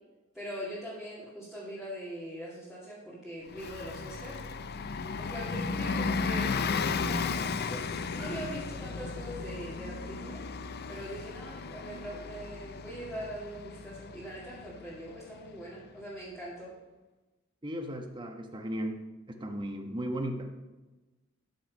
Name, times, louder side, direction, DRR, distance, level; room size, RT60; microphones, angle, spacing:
voice 1, 0.3-4.4 5.2-7.8 8.1-10.4 10.9-16.7, equal, ahead, -10 dB, 2.5 m, -42 dB
Bus, 3.5-15.8, left 4 dB, 50° left, 0.5 m, -35 dB
voice 2, 17.6-20.6, equal, 25° right, 4 dB, 1.1 m, -36 dB
13.0 x 6.4 x 5.4 m, 1.1 s
head